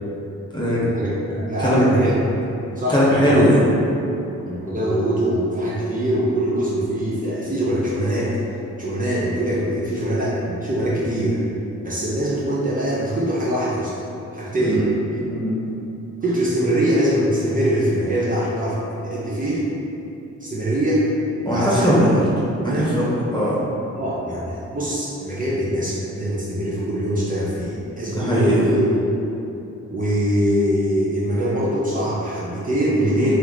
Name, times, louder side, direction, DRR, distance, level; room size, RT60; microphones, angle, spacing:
voice 1, 0.9-2.1 2.8-3.4 4.4-8.4 8.8-11.4 11.8-13.9 14.3-14.9 16.2-19.7 20.4-21.1 21.5-21.9 22.6-22.9 24.0-28.9 29.9-33.4, right 1 dB, 30° right, -8 dB, 0.7 m, -22 dB
voice 2, 2.9-3.6 14.6-14.9 15.2-15.6 21.4-23.6 28.1-28.6, equal, 15° left, -7 dB, 1.1 m, -19 dB
3.2 x 2.9 x 4.0 m, 2.9 s
cardioid pair, 85°, 29 cm